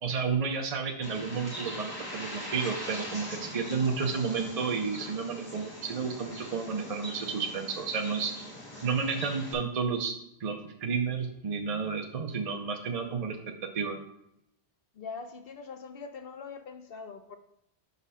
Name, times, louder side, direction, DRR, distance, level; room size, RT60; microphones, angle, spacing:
voice 1, 0.0-8.3 8.8-10.1 10.4-13.4 13.7-14.0, right 5 dB, 40° right, 3 dB, 0.7 m, -31 dB
Bird, 1.0-9.5, equal, 20° left, 1.5 m, -42 dB
voice 2, 14.9-17.4, left 5 dB, 65° left, 6 dB, 0.9 m, -43 dB
6.1 x 4.1 x 5.5 m, 0.80 s
omnidirectional pair, 1.0 m